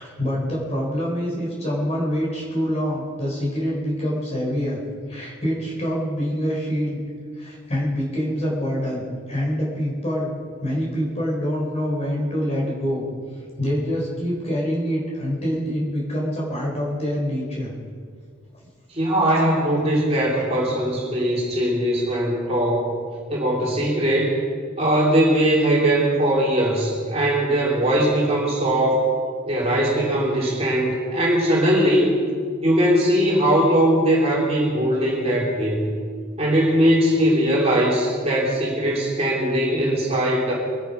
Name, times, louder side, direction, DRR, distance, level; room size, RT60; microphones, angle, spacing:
voice 1, 0.0-4.8 5.1-7.0 7.4-9.0 9.3-10.3 10.6-13.0 13.6-17.7, equal, 30° left, -4 dB, 4.0 m, -25 dB
voice 2, 18.9-22.9 23.3-24.4 24.8-29.0 29.5-32.1 32.6-35.9 36.4-40.5, right 1 dB, 30° right, -4 dB, 3.0 m, -20 dB
23.0 x 10.0 x 5.4 m, 2.1 s
head